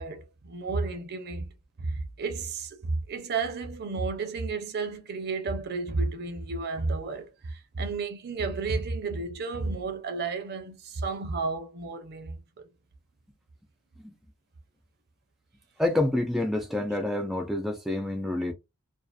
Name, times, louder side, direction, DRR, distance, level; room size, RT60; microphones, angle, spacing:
voice 1, 0.0-1.5 1.8-12.4, right 3 dB, 50° right, 0.6 m, -32 dB
voice 2, 15.8-18.5, left 1 dB, ahead, 0.3 m, -28 dB
2.5 x 2.4 x 2.3 m
head